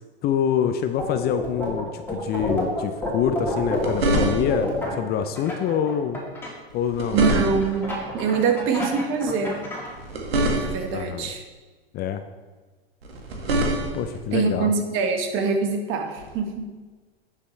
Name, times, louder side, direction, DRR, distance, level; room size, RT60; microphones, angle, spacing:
voice 1, 0.2-6.2 6.7-7.2 10.9-11.3 11.9-12.2 13.9-14.7, left 8 dB, 35° left, 8 dB, 0.5 m, -26 dB
sound 1, 1.0-1.8 2.1-6.5 7.2-9.9, left 2 dB, 5° left, 2.8 m, -28 dB
sound 2, 3.5-4.7 6.7-7.9 9.9-11.0 13.0-14.2 16.2-16.3, right 1 dB, 85° right, 1.9 m, -25 dB
voice 2, 7.1-9.6 10.5-11.4 14.3-16.7, right 5 dB, 45° right, 4 dB, 1.5 m, -24 dB
9.9 x 6.9 x 3.2 m, 1.3 s
hypercardioid pair, 105°, 30 cm